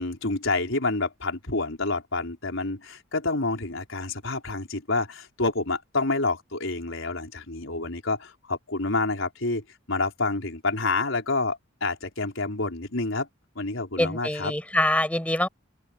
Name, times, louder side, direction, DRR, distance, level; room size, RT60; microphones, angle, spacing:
voice 1, 0.0-13.3 13.5-14.5, left 3 dB, 75° left, 4.6 m, -28 dB
voice 2, 14.0-15.5, left 1 dB, 5° left, 6.1 m, -24 dB
open air
head